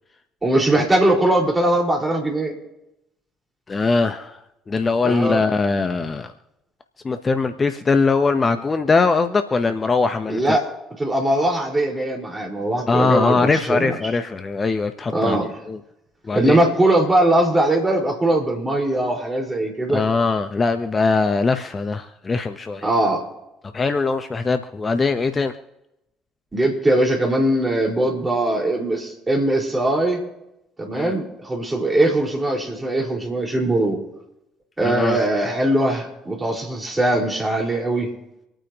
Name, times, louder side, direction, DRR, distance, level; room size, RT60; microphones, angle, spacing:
voice 1, 0.4-2.5 5.0-5.4 10.3-10.6 11.0-14.0 15.1-15.5 16.3-20.0 22.8-23.2 26.5-30.2 30.8-34.0 34.8-38.1, right 1 dB, 20° right, -1 dB, 5.0 m, -20 dB
voice 2, 3.7-4.4 4.7-6.3 7.0-10.6 12.9-15.4 15.7-15.8 16.2-16.6 19.9-22.9 23.7-25.5 30.9-31.1 34.8-35.2, left 4 dB, 30° left, 8 dB, 1.1 m, -21 dB
27.0 x 9.1 x 3.1 m, 0.91 s
hypercardioid pair, 55°, 0 cm